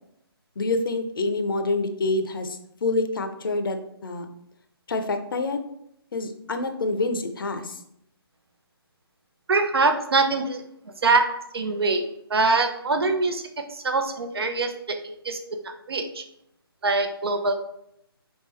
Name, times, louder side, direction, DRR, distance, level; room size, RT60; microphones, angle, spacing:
voice 1, 0.6-4.3 4.9-5.6 6.1-7.8, left 2 dB, 60° left, 8 dB, 0.6 m, -27 dB
voice 2, 9.5-10.6 11.0-12.0 12.3-16.2 16.8-17.5, right 3 dB, 70° right, 7 dB, 0.7 m, -24 dB
3.8 x 3.5 x 3.2 m, 0.74 s
hypercardioid pair, 160°, 13 cm